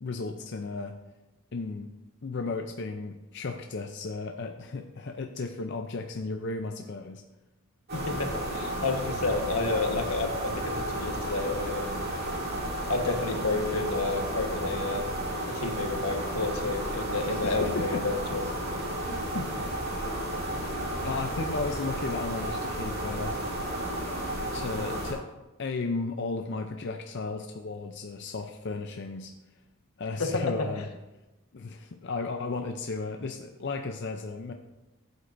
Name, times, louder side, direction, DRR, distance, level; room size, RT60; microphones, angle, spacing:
voice 1, 0.0-0.9 1.5-1.9 2.2-7.2 17.2-18.0 19.1-19.5 21.0-23.4 24.5-25.2 25.6-29.3 30.0-30.9 31.5-34.5, left 3 dB, 50° left, 4 dB, 0.5 m, -34 dB
voice 2, 7.9-12.0 12.9-15.0 15.5-18.4 30.2-30.9, left 3 dB, 80° left, 4 dB, 1.3 m, -30 dB
sound 1, 7.9-25.1, right 1 dB, 45° right, 2.5 m, -32 dB
14.5 x 8.1 x 2.6 m, 1.1 s
head